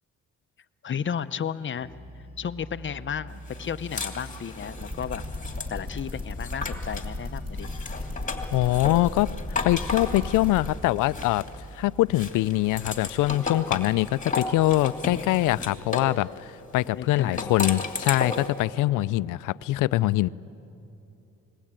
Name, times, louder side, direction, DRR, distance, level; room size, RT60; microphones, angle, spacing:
voice 1, 0.8-1.9 2.4-5.2 5.7-7.7 16.9-17.5 18.8-19.0 19.3-19.4, left 7 dB, 40° left, 13 dB, 0.8 m, -33 dB
sound 1, 1.7-15.5, right 2 dB, 50° right, 7.7 m, -45 dB
sound 2, 3.5-7.1 7.6-11.7 12.1-16.2 17.2-18.6, left 4 dB, 25° left, 2.6 m, -34 dB
sound 3, 4.8-10.7, left 2 dB, 20° right, 5.7 m, -34 dB
voice 2, 8.5-9.3 9.6-11.5 11.7-20.3, left 17 dB, 90° left, 18 dB, 0.5 m, -23 dB
28.5 x 20.5 x 8.9 m, 2.9 s
cardioid pair, 90°, 30 cm